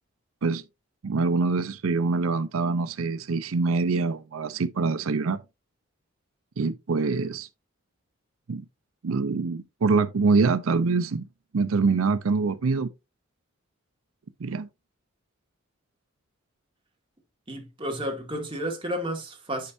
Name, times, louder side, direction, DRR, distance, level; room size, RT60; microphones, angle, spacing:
voice 1, 1.0-5.4 6.6-7.5 8.5-8.6 9.0-11.2 11.5-12.9 14.4-14.7, right 4 dB, 90° right, 0.5 m, -25 dB
voice 2, 17.5-19.7, equal, 25° right, 2.6 m, -32 dB
10.5 x 5.3 x 2.7 m
head